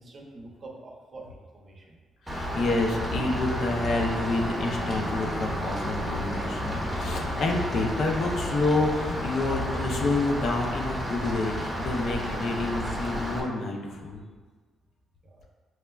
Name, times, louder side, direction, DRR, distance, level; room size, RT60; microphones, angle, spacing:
voice 1, 0.0-2.0 15.2-15.5, right 2 dB, 45° right, 0 dB, 0.6 m, -46 dB
voice 2, 2.3-14.2, left 2 dB, 65° left, 1 dB, 0.5 m, -28 dB
Rain, 2.3-13.4, equal, 5° right, 0.9 m, -31 dB
5.8 x 2.1 x 2.2 m, 1.4 s
cardioid pair, 90°, 0 cm